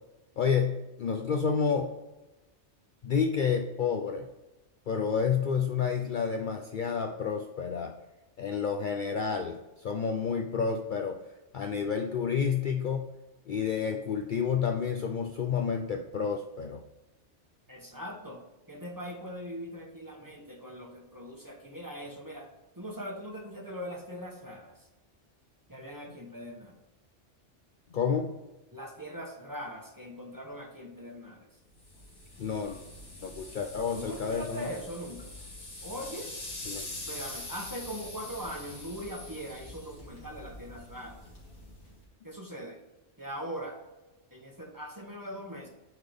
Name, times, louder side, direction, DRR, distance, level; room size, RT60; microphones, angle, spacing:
voice 1, 0.4-1.9 3.0-4.3 4.9-7.9 8.4-11.2 11.5-13.1 13.5-16.8 27.9-28.3 32.4-32.8 33.2-34.7 36.7-36.9, left 6 dB, 55° left, 4 dB, 0.6 m, -30 dB
voice 2, 17.7-22.5 22.8-24.7 25.7-26.8 28.7-31.5 33.9-35.3 35.8-36.3 37.0-41.2 42.2-42.8 43.2-43.8 44.3-45.7, equal, 20° right, 0 dB, 1.0 m, -41 dB
sound 1, 31.8-42.0, left 2 dB, 80° left, 2.4 m, -44 dB
8.9 x 3.9 x 3.5 m, 1.0 s
omnidirectional pair, 1.2 m